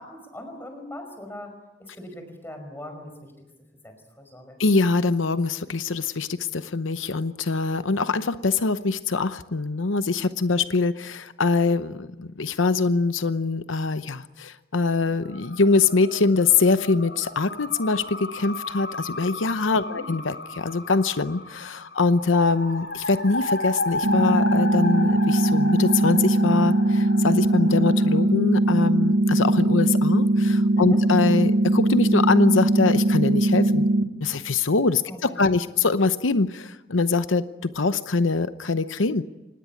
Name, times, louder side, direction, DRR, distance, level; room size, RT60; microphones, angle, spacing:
voice 1, 0.0-1.5 1.8-3.3 3.8-4.6 19.8-20.1 30.7-31.0 35.1-35.4, left 1 dB, 10° left, 6 dB, 5.3 m, -40 dB
voice 2, 4.6-33.9 34.2-39.2, left 3 dB, 90° left, 12 dB, 0.8 m, -23 dB
sound 1, 15.0-28.2, left 2 dB, 60° left, 4.5 m, -33 dB
sound 2, 24.0-34.0, right 1 dB, 65° right, 2.6 m, -20 dB
25.5 x 19.5 x 9.7 m, 1.0 s
head